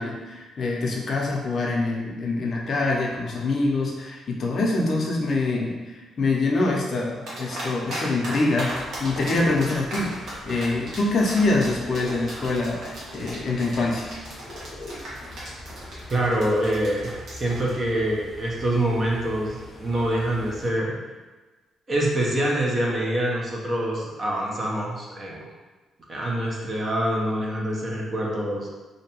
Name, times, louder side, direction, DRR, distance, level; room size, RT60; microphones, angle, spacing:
voice 1, 0.0-14.1, left 2 dB, 55° left, -1 dB, 0.5 m, -25 dB
sound 1, 7.3-8.0 8.2-17.7, right 1 dB, 70° right, 1.0 m, -36 dB
sound 2, 8.7-20.7, left 1 dB, 15° left, 0.7 m, -42 dB
voice 2, 16.1-20.9 21.9-25.4 26.1-28.7, right 1 dB, 40° right, -3 dB, 0.6 m, -25 dB
2.6 x 2.2 x 2.8 m, 1.3 s
cardioid pair, 90°, 0 cm